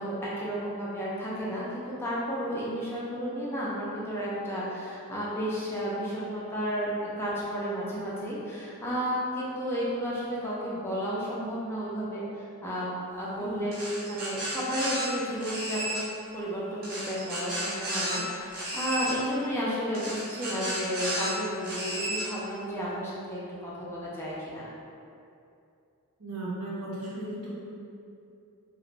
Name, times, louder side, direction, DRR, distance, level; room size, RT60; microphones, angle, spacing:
voice 1, 0.0-6.9 7.2-12.9 13.2-13.8 14.0-24.7, equal, 10° left, -7 dB, 0.3 m, -32 dB
sound 1, 13.7-15.1 15.4-16.0 16.8-18.2 18.5-19.1 19.9-21.3 21.6-22.2, right 1 dB, 45° right, 0.7 m, -33 dB
voice 2, 26.2-27.6, right 1 dB, 85° right, -7 dB, 0.7 m, -35 dB
2.4 x 2.0 x 2.9 m, 2.6 s
head